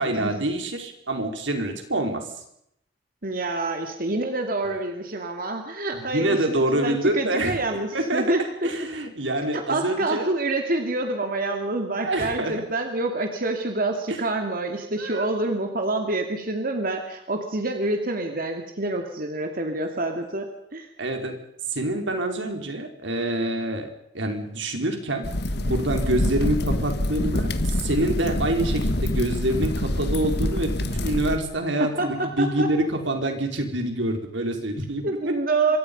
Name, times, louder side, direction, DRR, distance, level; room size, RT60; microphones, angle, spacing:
voice 1, 0.0-2.3 6.0-7.6 7.9-8.4 8.6-10.3 12.0-12.7 14.1-14.2 15.0-15.3 21.0-21.4 21.7-23.9 24.1-25.3 25.6-35.3, right 1 dB, 80° right, 4 dB, 4.7 m, -26 dB
voice 2, 3.2-8.7 9.5-20.9 31.8-32.7 35.0-35.8, right 2 dB, 50° right, 4 dB, 2.6 m, -27 dB
sound 1, 25.2-31.4, left 1 dB, 60° left, 1.7 m, -26 dB
26.5 x 24.0 x 5.5 m, 0.76 s
head